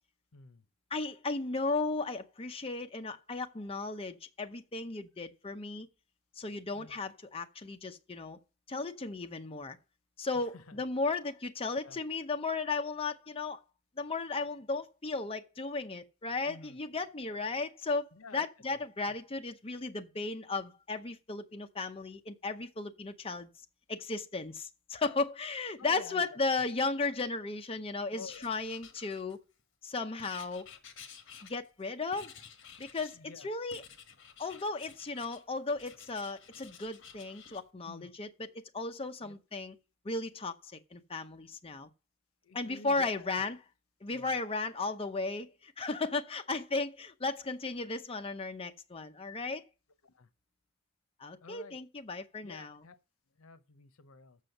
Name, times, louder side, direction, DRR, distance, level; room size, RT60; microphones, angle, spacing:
voice 1, 0.9-5.9 6.4-8.4 8.7-9.8 10.2-13.6 14.0-23.5 23.9-29.4 29.8-30.6 31.4-32.3 32.8-33.8 34.4-39.8 40.0-41.9 42.5-43.6 44.0-49.6 51.2-52.8, left 3 dB, 25° left, 0.7 m, -35 dB
voice 2, 16.5-16.8 17.3-17.4 18.2-18.4 25.8-26.2 28.1-28.5 33.2-33.5 37.8-38.1 39.2-39.3 42.4-43.3 44.1-44.3 50.0-50.3 51.4-51.8 52.4-53.0 53.4-54.4, left 4 dB, 85° left, 0.8 m, -50 dB
Writing, 28.3-29.6 30.2-31.8 32.1-33.2 33.7-35.4 35.8-37.6, left 7 dB, 65° left, 1.4 m, -52 dB
7.5 x 6.1 x 6.5 m
head